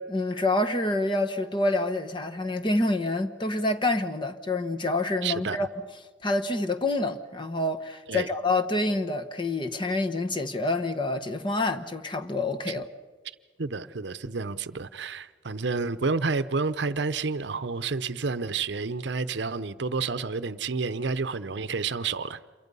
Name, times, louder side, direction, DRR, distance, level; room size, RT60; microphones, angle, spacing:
voice 1, 0.0-5.7 6.2-12.9, left 2 dB, 25° left, 1.0 m, -27 dB
voice 2, 5.2-5.6 8.1-8.3 12.7-12.8 13.6-22.4, right 4 dB, 65° right, 0.7 m, -30 dB
28.0 x 23.5 x 5.4 m
head